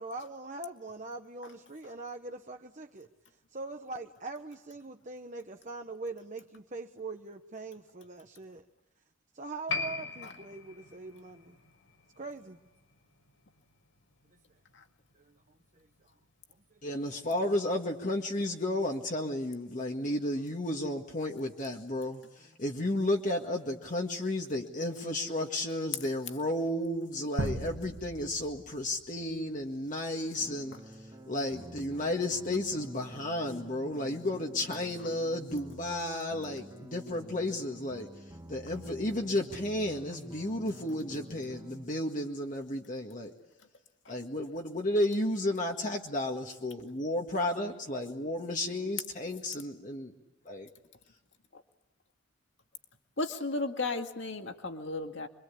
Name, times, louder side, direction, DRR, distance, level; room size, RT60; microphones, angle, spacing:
voice 1, 0.0-3.1 3.5-8.6 9.3-11.6 12.2-12.6 15.2-15.3 15.8-15.9 19.8-19.9, right 3 dB, 40° right, 4 dB, 1.1 m, -42 dB
Piano, 9.7-16.7 16.9-17.0, left 4 dB, 85° left, 5.2 m, -42 dB
voice 2, 16.8-30.8 31.3-38.1 38.5-43.3 44.1-49.4 49.9-50.0 50.5-50.7, left 1 dB, 40° left, 1 dB, 1.9 m, -33 dB
sound 1, 27.4-29.3, right 1 dB, 65° right, 1.7 m, -37 dB
sound 2, 30.4-41.9, right 1 dB, 20° right, 1.4 m, -48 dB
voice 3, 53.2-55.3, left 3 dB, 65° left, 5 dB, 2.2 m, -34 dB
26.5 x 24.5 x 8.5 m, 0.94 s
head